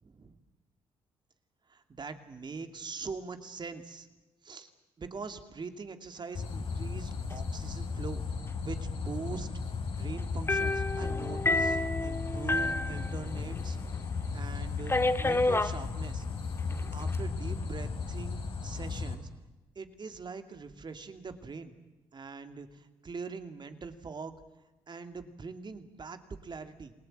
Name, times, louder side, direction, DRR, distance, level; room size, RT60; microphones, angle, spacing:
voice 1, 0.0-0.4 1.7-4.1 4.4-4.7 5.0-8.2 8.6-9.5 10.0-13.8 14.3-16.2 16.7-19.3 19.7-21.7 22.1-24.4 24.9-26.9, right 4 dB, 40° right, 8 dB, 2.7 m, -42 dB
sound 1, 6.3-19.2, left 4 dB, 55° left, 3.9 m, -35 dB
sound 2, 10.5-13.7 14.0-14.1 14.9-15.8 16.7-17.2, left 2 dB, 20° left, 1.7 m, -29 dB
28.0 x 19.0 x 9.0 m, 1.1 s
supercardioid pair, 60°, 11 cm